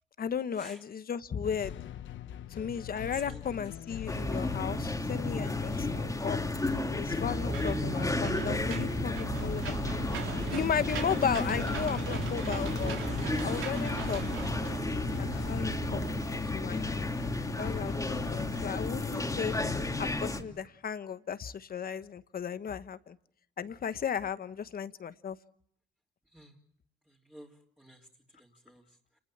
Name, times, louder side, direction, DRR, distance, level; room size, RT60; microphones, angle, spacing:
voice 1, 0.2-1.7 2.5-6.5 6.9-9.7 10.5-13.0 13.4-16.1 16.4-17.1 17.6-19.5 20.0-23.2 23.6-25.4, left 7 dB, 50° left, 13 dB, 1.2 m, -35 dB
sound 1, 1.4-20.2, left 11 dB, 70° left, 1.0 m, -41 dB
voice 2, 3.1-3.7 26.3-26.6 27.1-29.2, equal, 5° right, -4 dB, 3.5 m, -52 dB
sound 2, 4.1-20.4, left 2 dB, 15° left, 2.7 m, -33 dB
Engine / Mechanisms, 7.3-16.3, right 8 dB, 80° right, 3.6 m, -39 dB
29.5 x 20.0 x 8.6 m, 0.71 s
cardioid pair, 90°, 20 cm